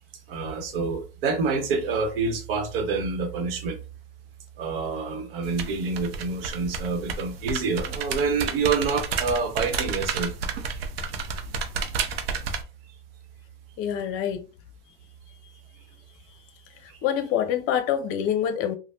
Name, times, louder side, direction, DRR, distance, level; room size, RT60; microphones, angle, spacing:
voice 1, 0.3-3.8 4.6-10.3 16.9-17.0, right 4 dB, 70° right, 0.9 m, -27 dB
sound 1, 5.4-12.6, right 5 dB, 85° right, 0.6 m, -31 dB
voice 2, 13.8-14.4 16.8-18.8, left 9 dB, 45° left, 0.7 m, -26 dB
3.2 x 2.1 x 2.7 m
hypercardioid pair, 110°, 30 cm